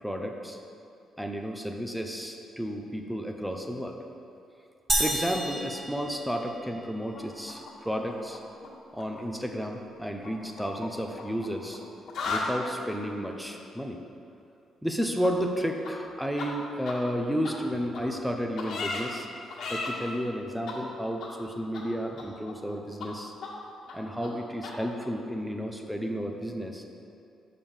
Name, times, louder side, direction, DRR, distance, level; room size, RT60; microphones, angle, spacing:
voice 1, 0.0-0.6 1.2-4.0 5.0-8.4 8.9-11.8 12.3-14.0 14.8-19.3 19.7-23.3 23.9-26.8, equal, ahead, 3 dB, 0.8 m, -32 dB
sound 1, 4.9-6.8, right 1 dB, 25° right, 1.2 m, -30 dB
sound 2, 7.1-8.7 8.9-9.2 10.2-11.8 12.0-12.5 15.2-15.3 15.8-15.9 16.4-16.5 16.8-16.9 17.4-17.5 17.9-18.0 18.6-19.0 19.5-19.9 20.7-20.8 21.2-21.3 21.7-21.8 22.2-22.7 23.0-23.1 23.4-23.5 23.9-24.0 24.2-24.3 24.6-24.7, left 4 dB, 65° left, 1.8 m, -35 dB
6.7 x 5.3 x 5.6 m, 2.7 s
cardioid pair, 90°, 0 cm